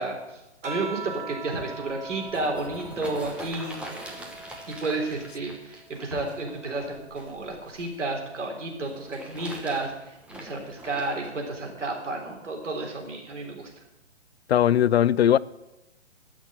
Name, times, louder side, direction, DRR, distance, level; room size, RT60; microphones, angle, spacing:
voice 1, 0.0-3.8 4.7-13.7, right 2 dB, 80° right, 3.6 m, -32 dB
sound 1, 0.6-5.4 5.9-7.6 8.8-9.3, right 4 dB, 40° right, 2.6 m, -42 dB
sound 2, 2.1-8.0 8.8-11.3 12.0-12.1, right 1 dB, 5° right, 1.0 m, -42 dB
voice 2, 14.5-15.4, left 10 dB, 60° left, 0.5 m, -19 dB
13.5 x 6.3 x 7.9 m
hypercardioid pair, 145°, 36 cm